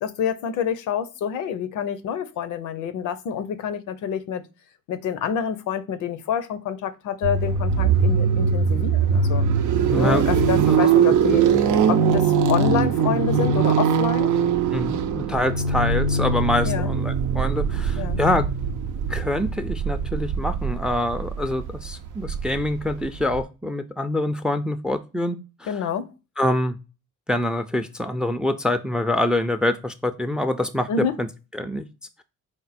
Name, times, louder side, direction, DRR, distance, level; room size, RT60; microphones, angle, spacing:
voice 1, 0.0-4.4 4.9-9.4 9.9-11.5 11.9-14.4 16.6-16.9 17.9-18.2 25.7-26.1 30.9-31.2, left 7 dB, 80° left, 0.6 m, -27 dB
sound 1, 7.2-23.4, right 6 dB, 85° right, 0.5 m, -22 dB
voice 2, 9.9-10.8 14.7-18.4 19.1-25.8 26.4-26.8 27.3-30.9 31.2-31.3 31.5-31.9, left 1 dB, 5° right, 0.3 m, -25 dB
4.3 x 2.1 x 4.1 m
cardioid pair, 90°, 30 cm